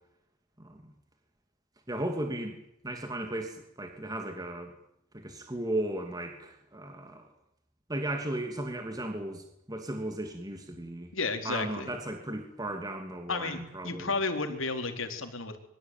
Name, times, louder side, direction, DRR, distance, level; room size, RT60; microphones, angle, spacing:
voice 1, 0.6-0.9 1.9-4.7 5.1-7.3 7.9-11.1 11.4-14.1, right 1 dB, 20° right, 5 dB, 2.9 m, -36 dB
voice 2, 11.1-11.9 13.3-15.6, left 3 dB, 90° left, 6 dB, 4.1 m, -32 dB
26.0 x 24.0 x 9.2 m, 0.79 s
head